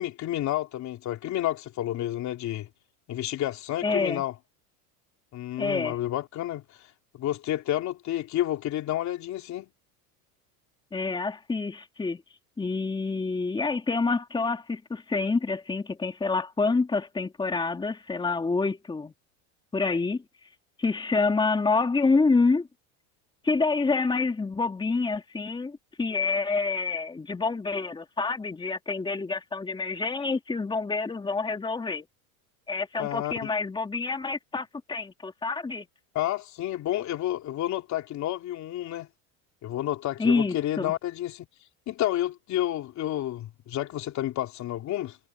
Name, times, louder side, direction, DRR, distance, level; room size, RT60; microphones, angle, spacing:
voice 1, 0.0-2.7 3.1-4.3 5.3-6.9 7.1-9.7 33.0-33.5 36.1-39.1 39.6-41.5 41.9-45.2, left 13 dB, 40° left, 3.3 m, -30 dB
voice 2, 3.8-4.2 5.6-6.0 10.9-12.2 12.6-19.1 19.7-20.2 20.8-22.7 23.4-32.0 32.7-35.9 40.2-40.9, left 4 dB, 10° left, 2.8 m, -27 dB
supercardioid pair, 135°, 43 cm